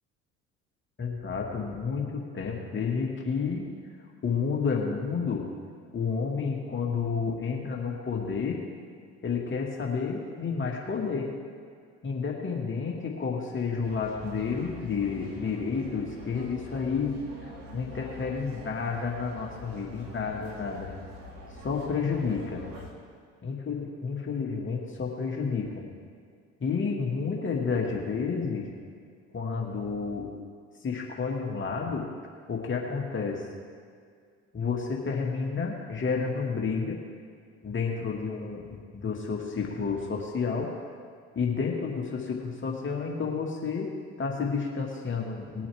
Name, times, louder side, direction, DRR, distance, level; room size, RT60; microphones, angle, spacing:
voice 1, 1.0-3.7 4.2-5.5 5.9-8.6 9.2-11.3 12.0-17.2 17.4-20.9 21.6-22.6 23.4-25.8 26.6-28.7 29.3-30.3 30.8-32.0 32.5-33.5 34.5-37.0 37.6-40.7 41.4-43.9 44.2-45.7, left 5 dB, 35° left, -1 dB, 2.1 m, -30 dB
sound 1, 13.8-22.9, left 1 dB, 70° right, 2.4 m, -45 dB
20.5 x 8.5 x 3.6 m, 2.1 s
hypercardioid pair, 65°, 34 cm